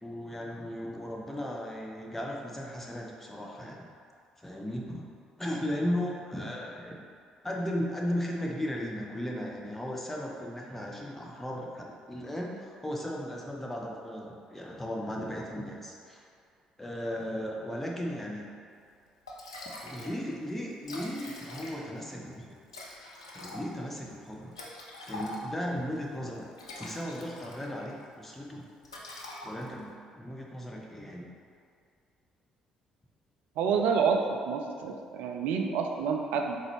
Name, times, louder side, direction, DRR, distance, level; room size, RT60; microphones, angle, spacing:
voice 1, 0.0-3.8 4.4-5.1 5.4-6.9 7.4-16.2 16.8-18.5 19.8-22.5 23.3-24.5 25.1-26.4 26.8-28.7 29.4-31.3, equal, 10° left, -2 dB, 0.7 m, -36 dB
Liquid, 18.9-19.0 19.3-20.2 20.5-20.6 20.8-22.0 22.7-25.7 26.4-27.9 28.2-28.5 28.8-29.9, left 1 dB, 80° left, 0.3 m, -43 dB
voice 2, 33.6-36.6, right 5 dB, 60° right, 3 dB, 0.3 m, -28 dB
3.9 x 3.0 x 3.0 m, 2.3 s
figure-of-eight pair, 45°, 3 cm